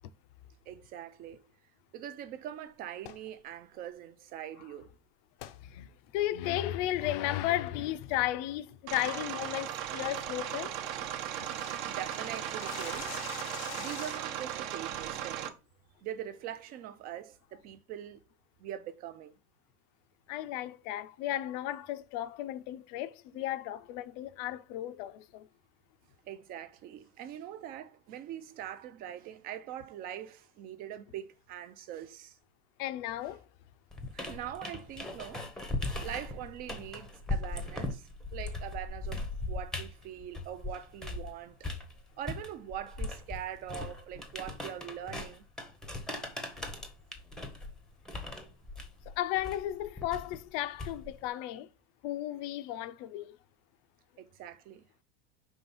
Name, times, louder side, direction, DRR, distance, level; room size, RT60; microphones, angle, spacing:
voice 1, 0.7-1.5 1.9-4.9 10.9-11.4 11.9-13.2 13.8-15.6 16.0-18.2 18.6-19.4 26.2-32.4 34.1-35.4 36.0-41.7 42.2-45.5 54.2-54.9, right 10 dB, 30° right, 0.5 m, -43 dB
sound 1, 3.0-3.3 5.4-5.6 6.1-6.2 6.7-7.0 7.3-7.7 8.0-8.3 8.6-8.7 9.1-9.4 9.7-9.8 10.2-10.3 10.4-10.5 10.8-14.5, left 13 dB, 80° left, 0.8 m, -46 dB
voice 2, 5.6-10.7 20.3-25.5 32.8-33.4 49.1-51.7 52.0-53.4, left 14 dB, 45° left, 0.6 m, -34 dB
sound 2, 8.9-15.5, right 10 dB, 55° right, 1.0 m, -37 dB
sound 3, 33.9-41.3 41.6-51.2, left 2 dB, ahead, 0.7 m, -39 dB
5.6 x 3.4 x 5.4 m
supercardioid pair, 165°, 29 cm